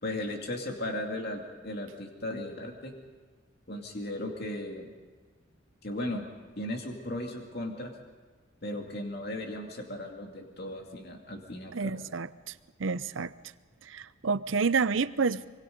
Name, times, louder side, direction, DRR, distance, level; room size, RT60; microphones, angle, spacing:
voice 1, 0.0-2.9 3.7-4.9 5.8-6.2 6.6-7.9 8.6-12.0, left 1 dB, 55° left, 2 dB, 2.5 m, -36 dB
voice 2, 11.7-12.5 12.8-13.3 13.9-15.5, right 5 dB, 80° right, 15 dB, 0.7 m, -29 dB
25.5 x 24.0 x 5.3 m, 1.4 s
head